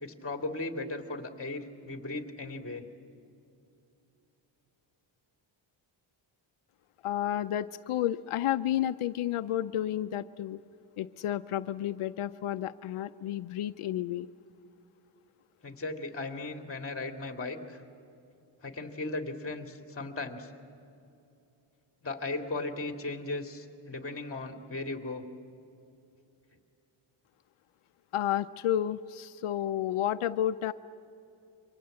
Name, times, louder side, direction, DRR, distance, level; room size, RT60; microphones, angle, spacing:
voice 1, 0.0-2.9 15.6-17.8 18.6-20.5 22.0-25.2, left 2 dB, 25° left, 5 dB, 2.3 m, -37 dB
voice 2, 7.0-10.6 11.0-14.3 28.1-30.7, left 12 dB, 85° left, 10 dB, 0.7 m, -31 dB
28.5 x 24.0 x 7.8 m, 2.7 s
wide cardioid pair, 145°, 49 cm